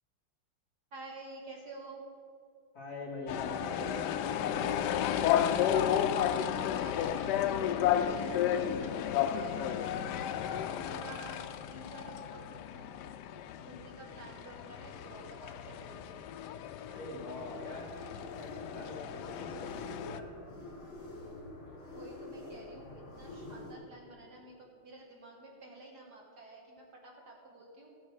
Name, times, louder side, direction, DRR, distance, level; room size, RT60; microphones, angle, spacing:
voice 1, 0.9-2.0 6.2-10.0 10.4-12.9 13.6-16.2 22.0-27.9, right 2 dB, 50° right, -1 dB, 1.9 m, -50 dB
voice 2, 2.7-4.8 16.9-17.9 18.1-20.3, left 1 dB, 45° left, -5 dB, 3.2 m, -44 dB
sound 1, 3.3-20.2, left 9 dB, 85° left, 0.9 m, -33 dB
sound 2, 17.4-23.7, left 2 dB, 70° left, 3.5 m, -46 dB
16.5 x 8.2 x 4.9 m, 2.4 s
omnidirectional pair, 2.4 m